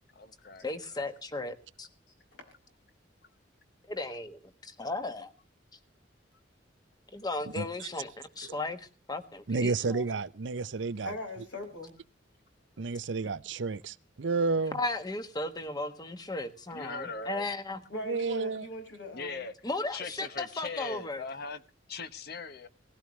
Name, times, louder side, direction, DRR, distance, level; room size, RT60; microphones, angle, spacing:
voice 1, 0.1-1.1 16.7-17.5 19.1-19.5 19.9-21.6 21.9-22.7, left 4 dB, 60° left, 1.1 m, -40 dB
voice 2, 0.6-1.9 3.9-5.3 7.1-10.0 14.7-17.8 19.6-21.2, left 2 dB, 20° left, 1.3 m, -36 dB
voice 3, 7.5-7.9 8.4-8.6 9.5-11.1 12.8-14.8 18.1-18.7, right 4 dB, 80° right, 0.6 m, -31 dB
voice 4, 11.0-12.0 17.9-19.4, left 1 dB, 80° left, 5.4 m, -40 dB
18.0 x 15.5 x 3.2 m
head